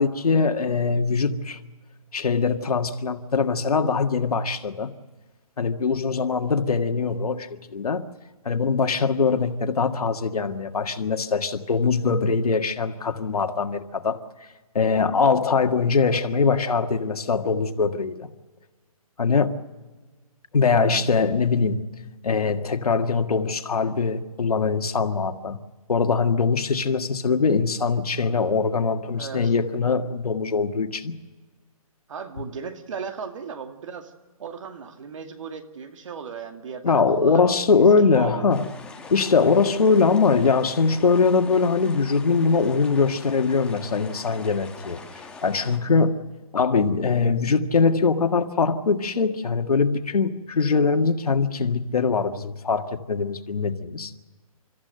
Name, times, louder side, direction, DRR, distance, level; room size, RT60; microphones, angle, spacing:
voice 1, 0.0-1.6 2.1-4.9 5.6-8.1 8.5-14.2 14.8-18.3 19.2-19.6 20.5-21.9 22.2-25.6 25.9-31.2 36.8-38.7 39.1-45.0 45.4-46.2 46.5-54.1, left 4 dB, 85° left, 1.8 m, -22 dB
voice 2, 29.1-29.5 32.1-34.1 34.4-38.5, right 6 dB, 60° right, 2.3 m, -37 dB
sound 1, 38.5-45.8, left 4 dB, 5° left, 1.2 m, -43 dB
30.0 x 14.0 x 7.7 m
hypercardioid pair, 160°, 19 cm